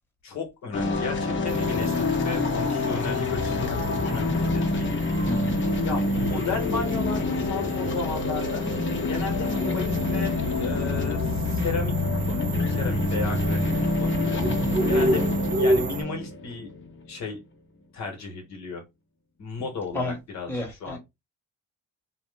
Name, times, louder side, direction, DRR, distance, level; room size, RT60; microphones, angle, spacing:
voice 1, 0.2-4.9 5.8-8.6 9.1-14.4 14.9-16.7 17.1-17.4 17.9-18.8 19.4-21.0, left 4 dB, 65° left, 1.1 m, -34 dB
sound 1, 0.7-17.1, left 2 dB, 40° left, 0.9 m, -26 dB
sound 2, 1.5-16.0, right 1 dB, 25° right, 0.6 m, -32 dB
voice 2, 5.3-5.6 19.9-20.2 20.5-21.0, left 1 dB, 5° left, 1.1 m, -31 dB
2.9 x 2.0 x 3.2 m
cardioid pair, 90°, 30 cm